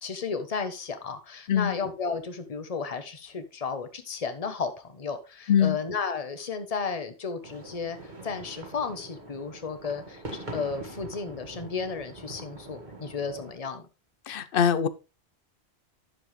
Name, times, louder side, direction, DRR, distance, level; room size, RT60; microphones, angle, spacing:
voice 1, 0.0-13.8, left 5 dB, 35° left, 1.1 m, -33 dB
sound 1, 7.4-13.5, right 2 dB, 45° right, 1.8 m, -43 dB
voice 2, 14.3-14.9, left 8 dB, 60° left, 0.8 m, -23 dB
10.0 x 6.9 x 3.2 m
omnidirectional pair, 1.1 m